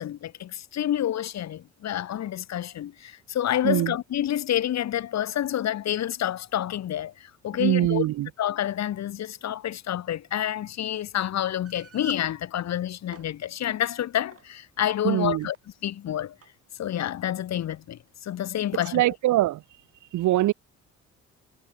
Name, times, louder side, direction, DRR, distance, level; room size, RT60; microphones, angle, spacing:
voice 1, 0.0-8.0 8.4-15.5 15.8-16.3 16.8-19.0, left 11 dB, 60° left, 1.3 m, -28 dB
voice 2, 3.6-3.9 7.6-8.3 15.0-15.5 18.9-19.6 20.1-20.5, right 15 dB, 80° right, 1.0 m, -23 dB
sound 1, 11.7-12.3 12.9-13.3 14.3-14.5 15.2-15.6 16.4-16.5 16.8-16.9 17.7-17.9, right 7 dB, 50° right, 4.7 m, -47 dB
cardioid pair, 90°, 30 cm